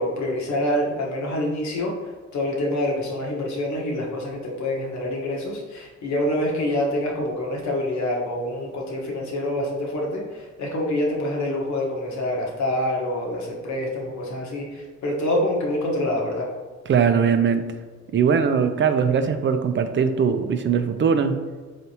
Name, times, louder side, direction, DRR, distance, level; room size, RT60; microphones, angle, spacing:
voice 1, 0.0-1.9 2.3-16.5, left 1 dB, 65° left, -2 dB, 1.2 m, -26 dB
voice 2, 16.9-17.6 18.1-21.4, right 6 dB, 40° right, 8 dB, 0.5 m, -20 dB
4.1 x 3.3 x 2.8 m, 1.4 s
cardioid pair, 80°, 31 cm